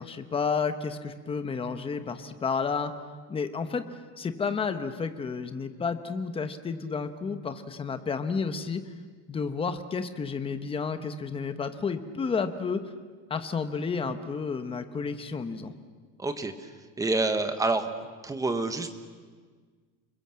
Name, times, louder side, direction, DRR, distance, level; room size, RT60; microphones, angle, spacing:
voice 1, 0.0-2.9 3.3-3.9 4.2-8.8 9.3-12.8 13.3-15.7, left 5 dB, 15° left, 9 dB, 1.0 m, -31 dB
voice 2, 16.2-16.7 17.0-17.9 18.2-19.0, right 3 dB, 10° right, 8 dB, 1.1 m, -27 dB
30.0 x 21.5 x 7.6 m, 1.5 s
cardioid pair, 170°, 39 cm